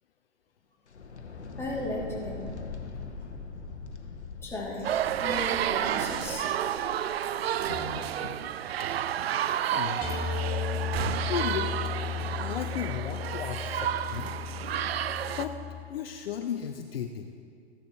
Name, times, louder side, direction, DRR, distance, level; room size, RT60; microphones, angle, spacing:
sound 1, 0.9-8.4, left 4 dB, 80° left, 1.1 m, -42 dB
voice 1, 1.6-2.5 4.4-4.9 5.2-6.5, left 1 dB, 10° left, -6 dB, 2.9 m, -35 dB
sound 2, 4.8-15.5, right 10 dB, 65° right, 0.5 m, -31 dB
voice 2, 9.7-10.0 11.3-11.9 12.4-14.3 15.4-15.6 15.9-17.3, left 8 dB, 60° left, 6 dB, 0.7 m, -34 dB
sound 3, 10.0-15.8, left 8 dB, 25° left, 2.6 m, -34 dB
15.0 x 10.5 x 3.2 m, 2.3 s
figure-of-eight pair, 110°, 33 cm